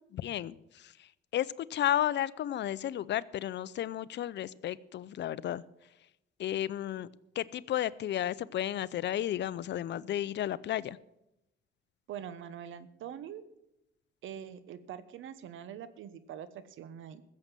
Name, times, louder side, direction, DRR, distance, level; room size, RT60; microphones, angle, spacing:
voice 1, 0.0-5.6 6.4-7.1 7.3-11.0, left 11 dB, 65° left, 20 dB, 0.6 m, -33 dB
voice 2, 12.1-13.4 14.2-17.2, right 9 dB, 80° right, 14 dB, 1.1 m, -44 dB
15.0 x 7.6 x 7.5 m, 0.87 s
cardioid pair, 90°, 20 cm